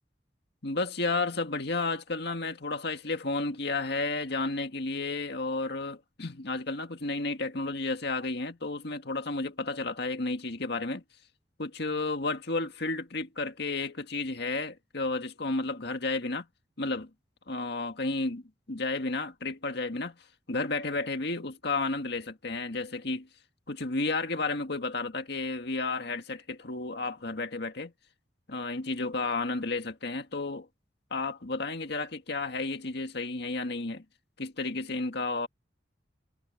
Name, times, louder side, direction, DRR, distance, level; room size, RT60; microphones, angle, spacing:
voice 1, 0.6-11.0 11.6-16.5 16.8-17.1 17.5-23.3 23.7-27.9 28.5-30.7 31.1-34.0 34.4-35.5, left 3 dB, 65° left, 2.0 m, -32 dB
head